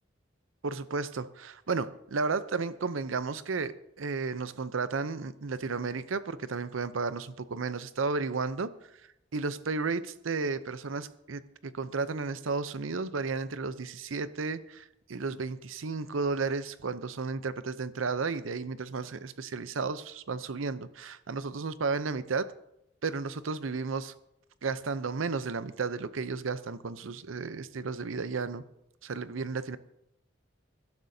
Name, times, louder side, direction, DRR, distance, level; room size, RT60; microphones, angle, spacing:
voice 1, 0.6-8.7 9.3-22.5 23.0-24.1 24.6-28.6 29.0-29.8, right 4 dB, 90° right, 14 dB, 0.7 m, -33 dB
21.5 x 12.0 x 2.8 m, 0.82 s
head